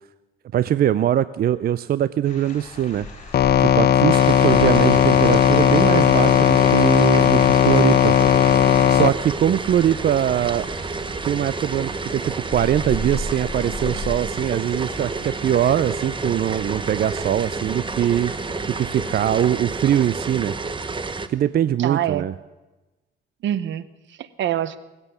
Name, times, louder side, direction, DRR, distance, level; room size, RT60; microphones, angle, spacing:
voice 1, 0.5-3.1 3.6-8.2 8.9-10.7 11.2-18.3 18.7-20.5 21.3-22.3, right 11 dB, 50° right, 16 dB, 0.4 m, -22 dB
sound 1, 2.2-19.3, left 2 dB, 35° left, 4.1 m, -38 dB
sound 2, 3.3-9.1, left 10 dB, 55° left, 0.7 m, -16 dB
sound 3, 4.1-21.3, right 3 dB, 25° right, 0.8 m, -30 dB
voice 2, 21.8-22.3 23.4-24.8, right 11 dB, 70° right, 16 dB, 0.8 m, -25 dB
20.0 x 8.3 x 6.9 m, 1.1 s
cardioid pair, 90°, 20 cm